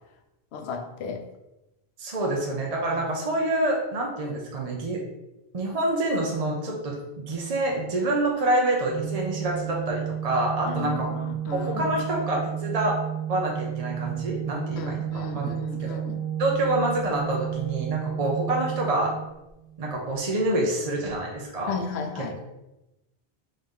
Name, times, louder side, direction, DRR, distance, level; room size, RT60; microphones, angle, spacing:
voice 1, 0.5-1.2 10.7-11.9 14.8-16.2 21.7-22.4, left 5 dB, 85° left, 6 dB, 0.9 m, -34 dB
voice 2, 2.0-5.0 5.5-11.1 11.5-13.0 13.3-15.5 15.8-16.0 16.4-19.1 19.8-21.8 22.1-22.3, right 1 dB, 40° right, -1 dB, 0.7 m, -27 dB
Organ, 8.9-19.8, right 10 dB, 5° right, 0.5 m, -32 dB
5.0 x 2.8 x 3.6 m, 0.96 s
omnidirectional pair, 1.1 m